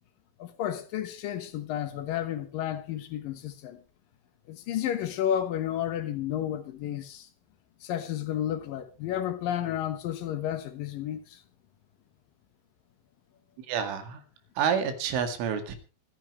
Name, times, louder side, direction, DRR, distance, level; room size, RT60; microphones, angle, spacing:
voice 1, 0.4-3.8 4.5-7.3 7.8-11.4, left 10 dB, 75° left, 2.0 m, -32 dB
voice 2, 13.7-14.2 14.6-15.8, right 7 dB, 75° right, 4.6 m, -28 dB
25.5 x 10.5 x 3.2 m
omnidirectional pair, 5.8 m